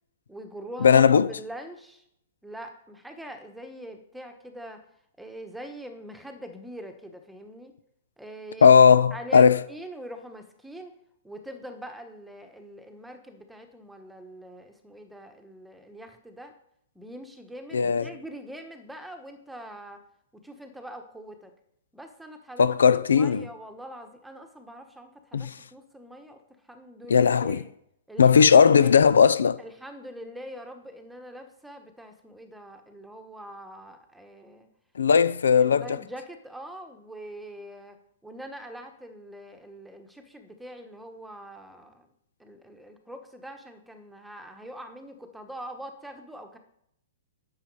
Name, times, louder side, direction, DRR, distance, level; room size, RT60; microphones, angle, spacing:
voice 1, 0.3-1.0 1.4-2.0 2.4-4.8 5.2-7.7 8.2-8.7 9.1-11.0 11.2-16.5 16.9-20.0 20.4-21.5 21.9-22.7 23.1-26.4 26.7-27.7 28.1-28.9 29.6-34.7 35.5-38.0 38.2-42.1 42.4-46.6, right 1 dB, 5° right, 1.2 m, -43 dB
voice 2, 0.8-1.3 8.6-9.6 17.7-18.1 22.6-23.5 25.3-25.6 27.1-27.6 28.2-29.6 35.0-36.0, left 6 dB, 85° left, 0.5 m, -17 dB
9.8 x 7.2 x 4.8 m
hypercardioid pair, 135°, 0 cm